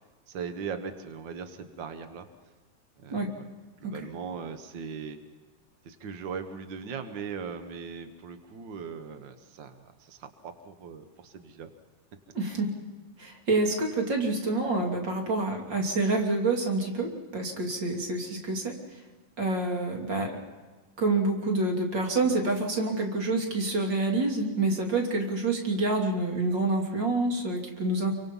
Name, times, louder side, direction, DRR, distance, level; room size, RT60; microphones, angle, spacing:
voice 1, 0.3-2.3 3.0-3.4 3.8-5.2 5.8-11.7, right 6 dB, 80° right, 8 dB, 1.0 m, -39 dB
voice 2, 12.3-12.7 13.2-18.7 19.4-20.4 21.0-28.1, right 2 dB, 35° right, 1 dB, 3.2 m, -27 dB
29.0 x 24.0 x 5.5 m, 1.3 s
omnidirectional pair, 4.0 m